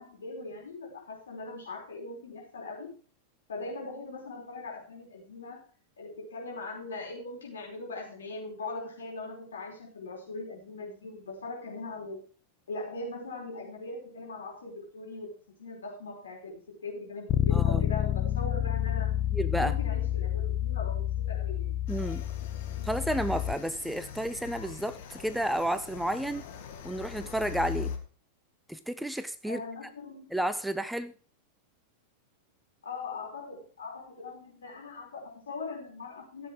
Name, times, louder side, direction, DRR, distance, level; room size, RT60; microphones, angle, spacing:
voice 1, 0.0-3.0 3.5-5.7 6.0-12.2 12.7-15.3 15.6-16.5 16.8-19.1 19.5-21.7 29.4-30.4 32.8-36.5, left 3 dB, 65° left, -1 dB, 5.1 m, -40 dB
Bass guitar, 17.3-23.5, left 11 dB, 30° left, 0.7 m, -29 dB
voice 2, 17.5-17.9 19.3-19.7 21.9-22.2 22.8-26.4 26.8-27.9 28.7-29.6 30.3-31.1, right 1 dB, ahead, 12 dB, 0.6 m, -31 dB
sound 1, 21.9-28.0, left 7 dB, 50° left, 1.9 m, -42 dB
14.5 x 7.6 x 4.8 m, 0.40 s
figure-of-eight pair, 90°, 0 cm